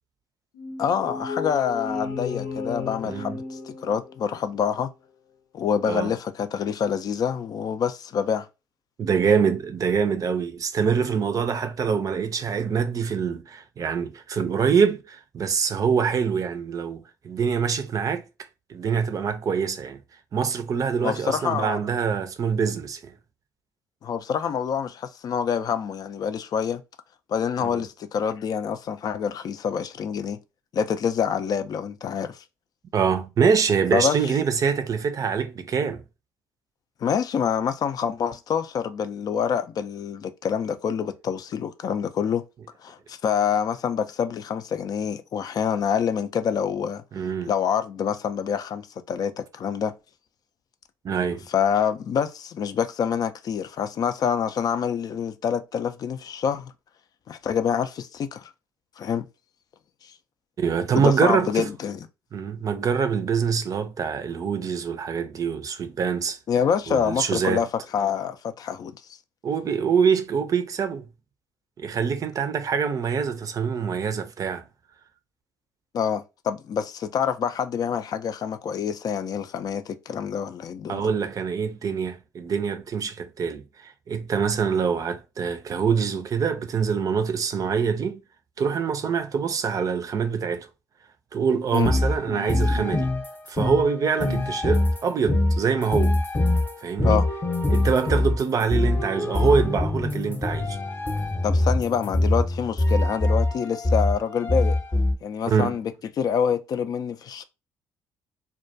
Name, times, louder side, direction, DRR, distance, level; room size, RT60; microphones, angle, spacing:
sound 1, 0.5-4.3, left 5 dB, 80° left, 0.7 m, -33 dB
voice 1, 0.8-4.9 5.5-8.5 21.0-21.8 24.0-26.8 27.3-30.4 30.7-32.4 33.9-34.2 37.0-42.4 42.8-47.0 47.5-48.8 49.1-49.9 51.5-56.7 57.3-58.5 59.0-59.3 60.9-62.0 66.5-67.7 67.9-69.0 75.9-81.0 91.7-91.9 97.0-97.3 101.4-104.8 105.2-105.9 106.2-107.5, left 7 dB, 50° left, 0.4 m, -26 dB
voice 2, 3.0-3.4 5.8-6.1 9.0-18.3 18.7-20.0 20.3-23.1 27.6-27.9 32.9-36.0 47.1-47.5 51.0-51.5 60.6-61.7 62.3-66.4 66.9-67.7 69.4-71.1 71.8-74.7 80.9-88.2 88.6-90.7 91.3-93.1 93.5-96.2 96.8-97.2 97.7-100.8 105.5-105.8, right 6 dB, 45° right, 0.5 m, -25 dB
sound 2, 91.7-105.1, left 2 dB, 20° left, 0.8 m, -24 dB
2.2 x 2.2 x 2.6 m
hypercardioid pair, 60°, 8 cm